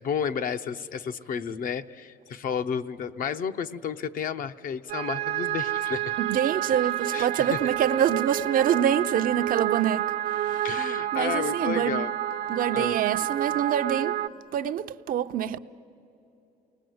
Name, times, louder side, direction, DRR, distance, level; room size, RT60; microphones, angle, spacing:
voice 1, 0.0-6.1 7.1-7.6 10.6-12.1 12.7-13.0, left 7 dB, 55° left, 0.8 m, -32 dB
sound 1, 4.9-14.3, right 12 dB, 85° right, 1.0 m, -29 dB
voice 2, 6.2-10.1 10.5-10.7 11.1-12.1 12.5-14.2 14.5-15.6, right 10 dB, 55° right, 0.6 m, -25 dB
29.0 x 20.0 x 7.9 m
cardioid pair, 110°, 17 cm